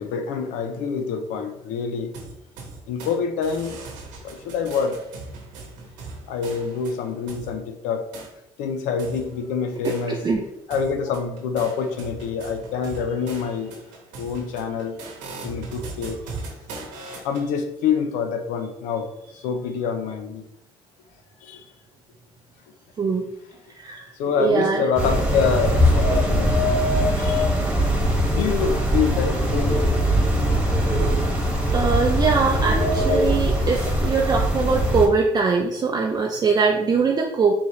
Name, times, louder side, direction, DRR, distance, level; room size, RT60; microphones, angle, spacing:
voice 1, 0.0-2.2 2.9-3.8 4.2-5.0 6.3-8.1 8.6-10.2 10.7-13.8 14.2-15.0 15.4-16.2 17.1-20.4 21.4-21.7 24.1-27.5 28.3-29.8, left 6 dB, 90° left, 7 dB, 0.5 m, -26 dB
sound 1, 2.1-3.2 3.4-7.5 8.1-8.3 9.0-10.4 10.7-17.5, right 3 dB, 85° right, 1.1 m, -39 dB
voice 2, 23.0-23.3 23.7-24.0 24.4-24.9 31.7-37.5, right 4 dB, 30° right, 1 dB, 0.5 m, -22 dB
sound 2, 25.0-35.1, equal, 10° right, 1.2 m, -21 dB
4.6 x 2.8 x 3.1 m, 0.86 s
cardioid pair, 85°, 13 cm